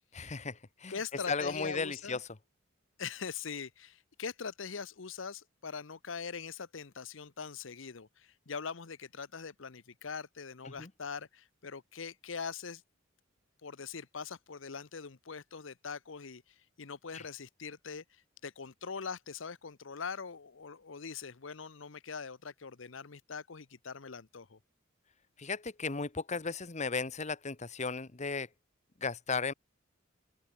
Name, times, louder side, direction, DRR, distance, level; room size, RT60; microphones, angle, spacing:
voice 1, 0.1-1.0 1.3-2.2 10.7-10.9 17.1-17.2 25.4-28.5 29.0-29.5, left 4 dB, 35° left, 1.1 m, -35 dB
voice 2, 0.9-2.2 3.0-12.8 13.6-24.6, left 5 dB, 75° left, 0.9 m, -42 dB
open air
head